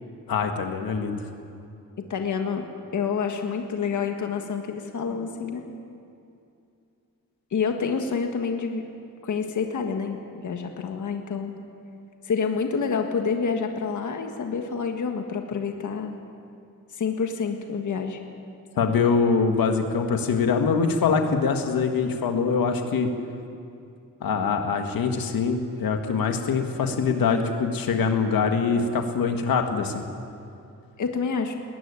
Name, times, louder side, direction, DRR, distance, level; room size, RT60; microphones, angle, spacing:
voice 1, 0.3-1.2 18.8-23.1 24.2-30.1, left 5 dB, 90° left, 5 dB, 1.9 m, -23 dB
voice 2, 2.0-2.7 2.9-5.6 7.5-8.8 9.2-11.5 12.2-16.1 16.9-18.2 31.0-31.5, left 5 dB, 60° left, 4 dB, 1.7 m, -28 dB
20.5 x 16.0 x 9.9 m, 2.6 s
wide cardioid pair, 150°, 34 cm